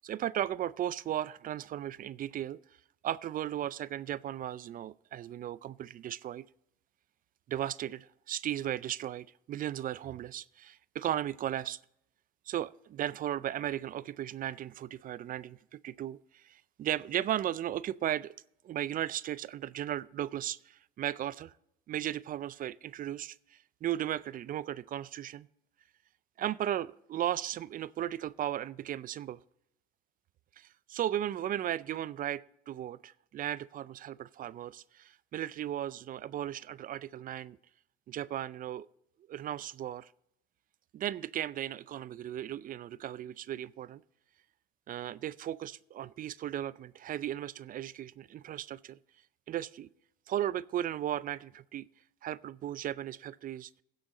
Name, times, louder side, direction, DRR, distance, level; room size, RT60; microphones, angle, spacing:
voice 1, 0.0-2.6 3.0-6.4 7.5-11.8 12.5-15.6 15.8-18.3 18.6-21.5 21.9-25.5 26.4-29.4 30.6-37.6 38.1-38.9 39.3-40.1 40.9-44.0 44.9-49.0 49.5-49.9 50.3-51.9 52.2-53.7, right 11 dB, 45° right, 19 dB, 0.4 m, -36 dB
16.0 x 6.3 x 4.1 m, 0.78 s
supercardioid pair, 80°, 19 cm